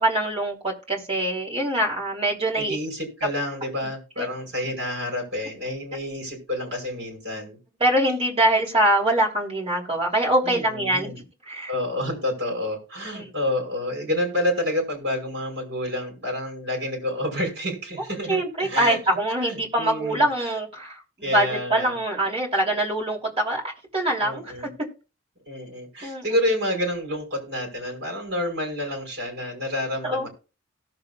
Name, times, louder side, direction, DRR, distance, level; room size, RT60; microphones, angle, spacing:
voice 1, 0.0-2.8 4.2-4.3 7.8-11.7 13.1-13.3 18.3-23.6 23.9-24.7 26.0-26.2 30.0-30.3, right 1 dB, 30° right, 3.3 m, -24 dB
voice 2, 2.6-7.6 10.4-11.2 11.7-19.0 19.5-20.2 21.2-21.9 24.2-24.7 25.5-30.3, left 1 dB, 55° right, 5.6 m, -29 dB
18.0 x 6.8 x 2.5 m
head